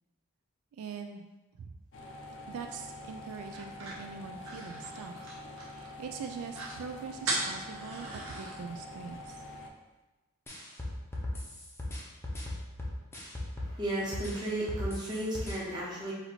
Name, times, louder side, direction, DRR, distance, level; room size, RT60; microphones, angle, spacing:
voice 1, 0.7-1.3 1.6-1.8 2.5-5.1 5.5-9.4, right 5 dB, 80° right, 5 dB, 0.3 m, -43 dB
sound 1, 1.9-9.7, left 1 dB, 55° left, 0.5 m, -46 dB
sound 2, 3.5-5.9 6.2-6.3 6.5-6.8 7.2-8.6, right 2 dB, 60° right, 1.0 m, -37 dB
sound 3, 10.5-13.8 14.1-15.6, left 1 dB, 10° left, 0.7 m, -37 dB
voice 2, 13.6-16.1, right 1 dB, 20° right, -6 dB, 1.1 m, -34 dB
4.2 x 2.7 x 4.2 m, 1.1 s
head